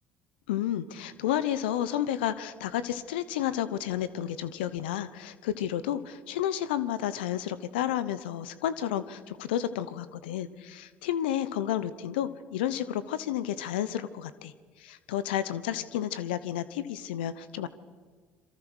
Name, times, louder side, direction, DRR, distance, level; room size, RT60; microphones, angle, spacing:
voice 1, 0.5-17.7, left 11 dB, 85° left, 15 dB, 1.0 m, -31 dB
26.5 x 24.0 x 6.4 m, 1.5 s
hypercardioid pair, 65°, 5 cm